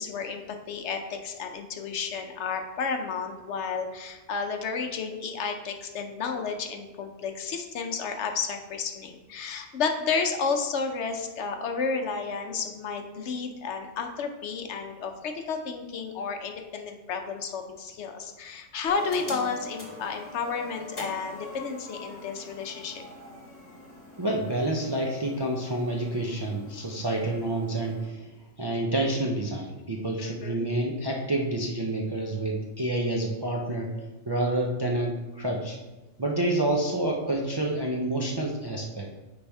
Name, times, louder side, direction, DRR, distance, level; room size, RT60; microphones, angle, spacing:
voice 1, 0.0-23.0 30.2-30.7, left 5 dB, 70° left, 5 dB, 1.0 m, -32 dB
sound 1, 18.9-28.1, left 2 dB, 55° left, 1.5 m, -44 dB
voice 2, 24.2-28.2 28.6-33.9 34.3-35.8 36.2-39.1, right 1 dB, 30° right, -1 dB, 0.4 m, -28 dB
9.7 x 3.4 x 3.5 m, 1.1 s
omnidirectional pair, 1.3 m